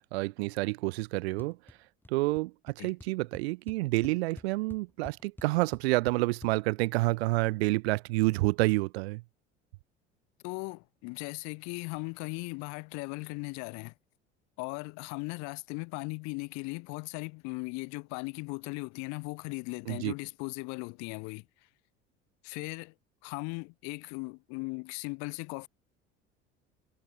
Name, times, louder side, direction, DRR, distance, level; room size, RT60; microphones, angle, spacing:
voice 1, 0.1-1.6 2.1-9.2 19.9-20.1, right 22 dB, 65° right, 0.7 m, -29 dB
sound 1, 1.4-1.8 2.0-2.4 2.7-2.8 3.0-6.5, left 1 dB, 5° left, 4.8 m, -48 dB
voice 2, 10.4-13.9 14.6-21.4 22.4-22.9 23.2-25.7, left 31 dB, 50° left, 0.7 m, -38 dB
figure-of-eight pair, 60°, 35 cm